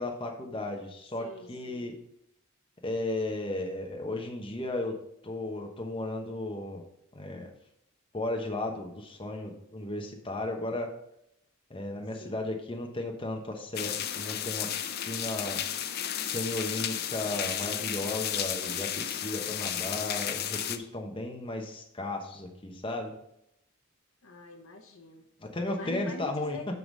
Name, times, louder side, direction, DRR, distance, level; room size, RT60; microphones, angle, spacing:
voice 1, 0.0-1.9 2.8-4.9 5.2-6.8 7.1-7.5 8.1-10.9 11.7-15.6 16.2-23.1 25.4-26.6, left 2 dB, 25° left, 2 dB, 1.0 m, -35 dB
voice 2, 1.2-1.9 12.2-12.6 24.2-25.3 25.8-26.7, left 2 dB, 70° left, 5 dB, 1.0 m, -44 dB
sound 1, 13.7-20.8, left 9 dB, 50° left, 0.5 m, -33 dB
9.3 x 3.9 x 5.2 m, 0.76 s
head